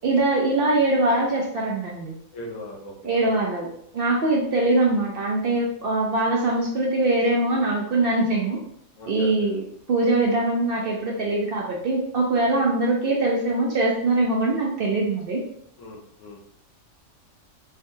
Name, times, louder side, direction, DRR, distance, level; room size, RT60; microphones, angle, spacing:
voice 1, 0.0-2.2 3.0-3.7 3.9-8.6 9.1-15.4, right 2 dB, 60° right, -2 dB, 0.6 m, -22 dB
voice 2, 2.3-2.9 3.2-3.4 8.9-9.6 15.8-16.4, left 1 dB, 75° left, -2 dB, 1.2 m, -38 dB
3.6 x 2.2 x 2.6 m, 0.70 s
omnidirectional pair, 1.3 m